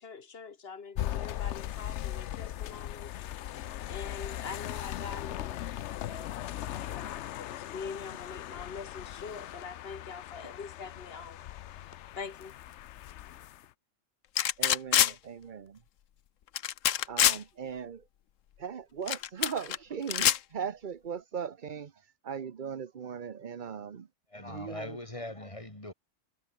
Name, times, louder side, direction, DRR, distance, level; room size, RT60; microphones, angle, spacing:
voice 1, 0.0-3.2 3.9-11.4 12.1-12.5, left 5 dB, 55° left, 1.6 m, -44 dB
sound 1, 1.0-13.7, left 12 dB, 70° left, 0.9 m, -39 dB
sound 2, 14.4-15.1 16.6-17.4 19.1-19.8 20.1-20.4, left 11 dB, 90° left, 1.2 m, -25 dB
voice 2, 14.6-15.8 17.1-18.1 18.6-24.1 24.5-25.0, right 7 dB, 45° right, 0.9 m, -39 dB
voice 3, 24.3-25.9, left 1 dB, 25° left, 4.3 m, -41 dB
omnidirectional pair, 1.3 m